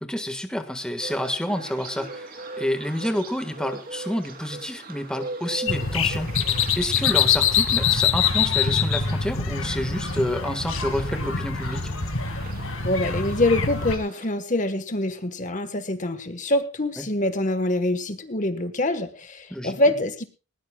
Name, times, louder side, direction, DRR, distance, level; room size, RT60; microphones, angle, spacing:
voice 1, 0.0-11.9 17.0-17.1 19.5-19.8, equal, 5° left, 7 dB, 1.5 m, -29 dB
sound 1, 1.0-14.3, right 2 dB, 40° right, 3.0 m, -41 dB
sound 2, 5.7-14.0, left 6 dB, 65° left, 2.2 m, -24 dB
voice 2, 12.8-20.3, left 1 dB, 35° left, 9 dB, 1.3 m, -25 dB
20.0 x 18.5 x 2.3 m, 0.32 s
head